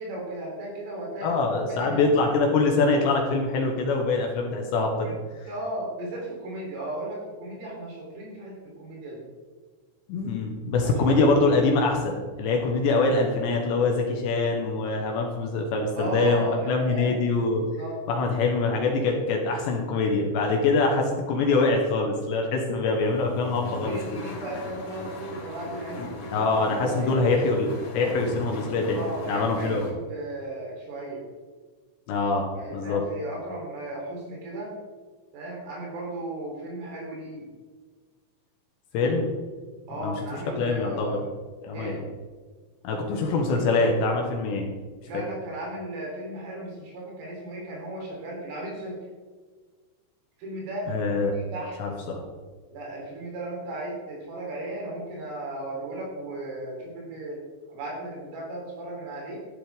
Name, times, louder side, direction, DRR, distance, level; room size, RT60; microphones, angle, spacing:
voice 1, 0.0-2.2 5.0-5.1 5.4-8.5 8.8-9.3 10.8-11.2 16.0-17.2 17.5-18.0 23.6-27.2 28.9-31.2 32.5-34.8 35.3-37.5 39.9-41.3 41.7-42.0 45.1-49.0 50.4-51.8 52.7-57.4 57.7-59.4, right 1 dB, 75° right, -2 dB, 5.8 m, -35 dB
voice 2, 1.2-4.9 10.1-17.6 18.1-24.0 26.0-29.8 32.1-33.0 38.9-39.3 40.0-40.1 40.6-41.2 41.6-42.0 42.8-44.7 50.9-51.4 51.8-52.2, left 3 dB, 70° left, 1 dB, 3.1 m, -24 dB
sound 1, 22.9-29.9, left 1 dB, 40° left, 2.1 m, -39 dB
13.0 x 11.0 x 3.5 m, 1.5 s
omnidirectional pair, 5.9 m